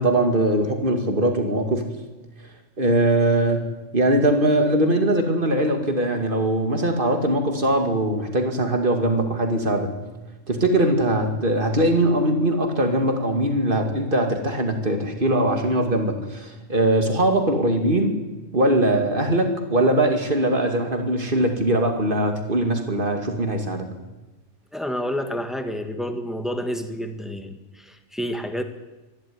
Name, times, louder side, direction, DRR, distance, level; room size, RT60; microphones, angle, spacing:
voice 1, 0.0-1.8 2.8-9.9 10.5-18.1 18.5-23.9, right 1 dB, 45° right, 5 dB, 2.6 m, -21 dB
voice 2, 24.7-28.6, equal, ahead, 6 dB, 1.6 m, -29 dB
25.0 x 12.0 x 9.6 m, 1.1 s
omnidirectional pair, 1.2 m